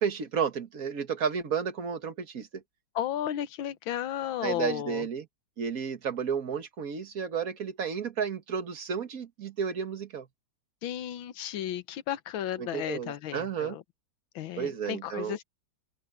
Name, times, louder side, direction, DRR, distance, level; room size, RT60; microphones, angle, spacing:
voice 1, 0.0-2.6 4.4-5.3 5.6-10.3 12.6-13.8 14.6-15.4, right 7 dB, 45° right, 1.9 m, -32 dB
voice 2, 3.0-5.0 10.8-13.8 14.4-15.4, left 11 dB, 80° left, 1.7 m, -34 dB
open air
omnidirectional pair, 2.2 m